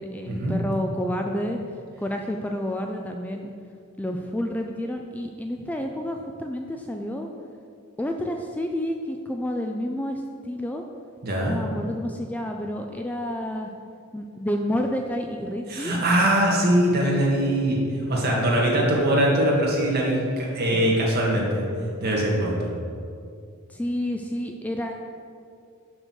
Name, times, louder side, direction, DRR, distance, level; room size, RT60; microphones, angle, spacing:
voice 1, 0.0-1.6 2.0-3.5 4.0-7.3 8.0-10.8 11.5-13.7 14.1-15.9 20.7-20.9 23.7-24.9, left 1 dB, 5° left, 3 dB, 0.3 m, -29 dB
voice 2, 11.2-11.6 15.7-17.8 18.1-21.6 22.0-22.7, right 1 dB, 50° right, -3 dB, 1.8 m, -22 dB
6.4 x 6.0 x 6.2 m, 2.3 s
head